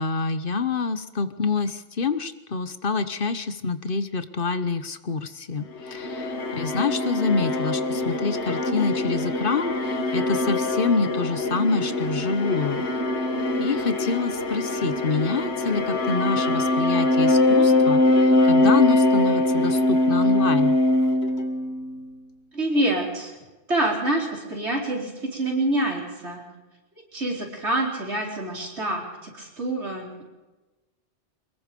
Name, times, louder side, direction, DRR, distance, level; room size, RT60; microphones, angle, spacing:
voice 1, 0.0-12.8 13.5-20.8, left 4 dB, 55° left, 12 dB, 1.2 m, -26 dB
sound 1, 5.7-22.1, left 2 dB, 80° left, 1.8 m, -23 dB
voice 2, 22.5-23.3 23.7-26.4 27.1-30.2, right 1 dB, 85° right, -1 dB, 4.9 m, -26 dB
24.5 x 21.5 x 5.3 m, 1.1 s
omnidirectional pair, 1.1 m